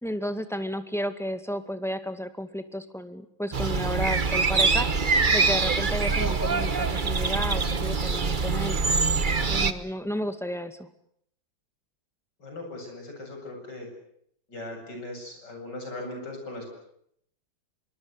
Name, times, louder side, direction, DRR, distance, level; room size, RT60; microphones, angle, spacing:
voice 1, 0.0-4.9 5.3-8.8 9.5-10.9, equal, ahead, 9 dB, 2.0 m, -32 dB
sound 1, 3.5-9.7, right 4 dB, 30° right, 1.2 m, -24 dB
voice 2, 12.4-13.9 14.5-16.7, left 2 dB, 60° left, 3 dB, 8.7 m, -39 dB
26.0 x 24.0 x 8.2 m, 0.71 s
omnidirectional pair, 2.1 m